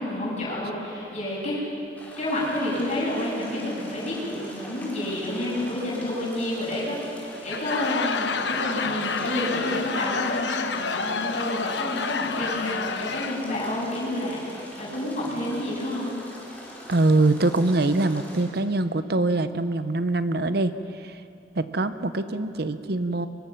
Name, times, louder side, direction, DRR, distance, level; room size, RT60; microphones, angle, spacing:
voice 1, 0.0-1.6 2.2-16.1, left 1 dB, 40° left, -6 dB, 7.5 m, -29 dB
sound 1, 2.0-18.5, equal, 10° left, 4.4 m, -43 dB
Laughter / Crowd, 7.3-13.6, left 4 dB, 90° left, 1.0 m, -29 dB
voice 2, 16.9-21.2 21.5-23.3, right 2 dB, 65° right, 11 dB, 0.9 m, -23 dB
23.0 x 22.0 x 6.0 m, 2.6 s
head